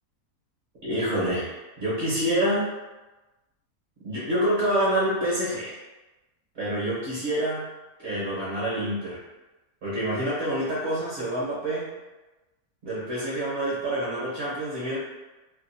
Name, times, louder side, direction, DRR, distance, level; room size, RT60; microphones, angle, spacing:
voice 1, 0.8-2.7 4.0-5.8 6.5-7.6 8.0-9.2 9.8-11.9 12.8-15.0, right 1 dB, 50° right, -8 dB, 1.0 m, -27 dB
2.7 x 2.3 x 2.6 m, 1.1 s
omnidirectional pair, 1.6 m